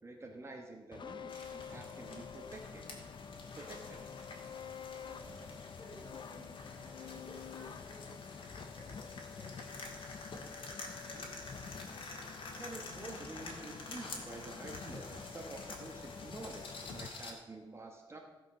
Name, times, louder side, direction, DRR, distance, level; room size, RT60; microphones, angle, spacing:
voice 1, 0.0-2.9 3.5-4.0 12.6-18.2, right 2 dB, 30° right, 2 dB, 1.2 m, -49 dB
sound 1, 0.9-17.1, left 6 dB, 60° left, 0.6 m, -48 dB
sound 2, 1.3-17.3, left 3 dB, 75° left, 2.2 m, -49 dB
voice 2, 5.0-5.5 5.8-6.8 7.1-8.5 8.7-11.3, equal, 35° left, -2 dB, 3.4 m, -57 dB
16.0 x 5.4 x 6.2 m, 1.3 s
wide cardioid pair, 145°, 9 cm